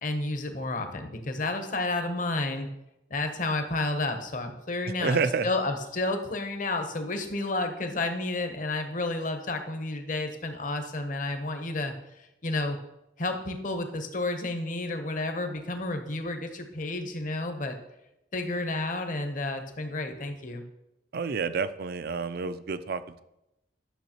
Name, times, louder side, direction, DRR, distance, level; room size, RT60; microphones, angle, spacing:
voice 1, 0.0-2.7 3.1-5.2 5.4-11.9 12.2-12.8 13.2-17.8 18.3-20.6, left 2 dB, 45° left, 6 dB, 0.9 m, -31 dB
voice 2, 5.0-5.5 21.1-23.2, right 5 dB, 55° right, 13 dB, 0.4 m, -29 dB
11.0 x 6.3 x 3.0 m, 0.89 s
head